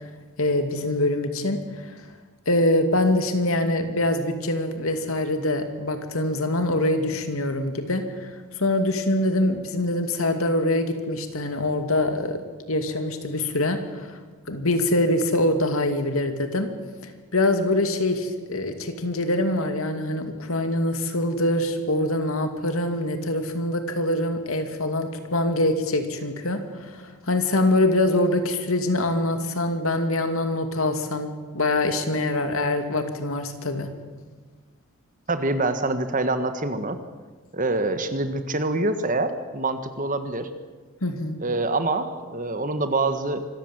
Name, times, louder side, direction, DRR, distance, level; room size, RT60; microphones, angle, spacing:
voice 1, 0.4-1.9 2.5-8.3 8.6-14.1 14.5-16.7 17.3-33.9 41.0-41.4, left 1 dB, 70° left, 7 dB, 2.5 m, -24 dB
voice 2, 35.3-37.0 37.5-40.5 41.4-43.4, right 2 dB, 35° right, 9 dB, 1.6 m, -25 dB
25.5 x 14.5 x 9.0 m, 1.4 s
head